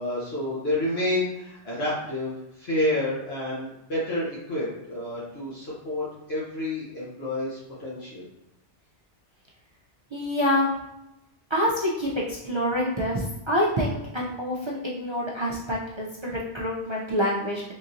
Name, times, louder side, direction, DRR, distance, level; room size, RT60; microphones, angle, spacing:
voice 1, 0.0-8.3, left 1 dB, 65° left, -7 dB, 1.2 m, -29 dB
voice 2, 10.1-10.7 11.5-17.6, equal, 50° right, -5 dB, 0.3 m, -26 dB
3.6 x 2.8 x 2.5 m, 0.87 s
omnidirectional pair, 1.2 m